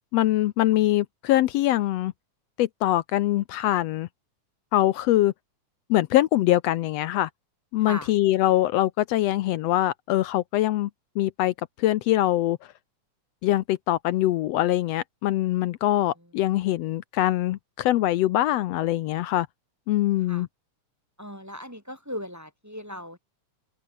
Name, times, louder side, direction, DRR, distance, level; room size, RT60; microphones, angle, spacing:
voice 1, 0.1-2.1 2.6-4.1 4.7-5.3 5.9-7.3 7.7-10.9 11.2-12.6 13.4-19.5 19.9-20.5, left 14 dB, 80° left, 1.5 m, -23 dB
voice 2, 7.8-8.1 16.2-16.3 20.3-20.5 21.2-23.2, left 1 dB, 5° right, 2.0 m, -38 dB
open air
omnidirectional pair, 3.6 m